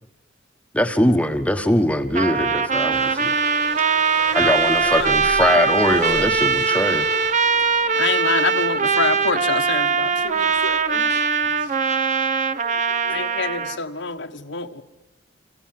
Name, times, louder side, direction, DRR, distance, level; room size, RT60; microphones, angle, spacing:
voice 1, 0.7-3.3 4.3-7.0, left 1 dB, 5° left, 7 dB, 1.3 m, -21 dB
Trumpet, 2.1-13.8, right 5 dB, 35° right, 0.9 m, -21 dB
voice 2, 2.3-3.2 3.7-3.8 10.3-11.8 12.5-13.5, right 1 dB, 80° right, 4 dB, 4.3 m, -46 dB
sound 1, 2.9-11.8, right 3 dB, 55° right, 2.1 m, -39 dB
voice 3, 4.3-5.1 5.5-6.3 7.9-11.1 13.1-14.8, left 4 dB, 60° left, 8 dB, 1.4 m, -27 dB
27.0 x 26.5 x 7.7 m, 1.0 s
head